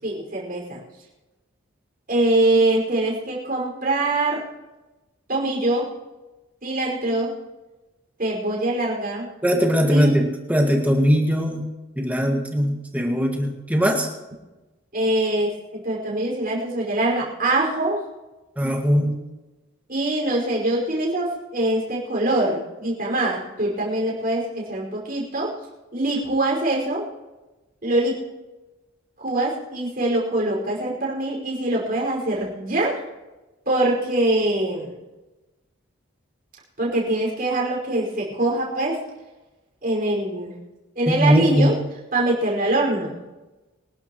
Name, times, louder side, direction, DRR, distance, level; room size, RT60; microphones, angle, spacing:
voice 1, 0.0-0.8 2.1-4.4 5.3-5.9 6.6-7.3 8.2-9.3 9.9-10.1 14.9-18.0 19.9-25.5 25.9-27.0 27.8-28.2 29.2-33.0 33.7-34.9 36.8-39.0 39.8-40.5 41.0-41.8 42.1-43.2, right 2 dB, 40° right, -3 dB, 5.4 m, -23 dB
voice 2, 9.4-11.7 12.0-14.1 18.6-19.2 41.1-41.7, equal, 5° right, 1 dB, 1.9 m, -20 dB
26.0 x 12.0 x 3.1 m, 1.1 s
head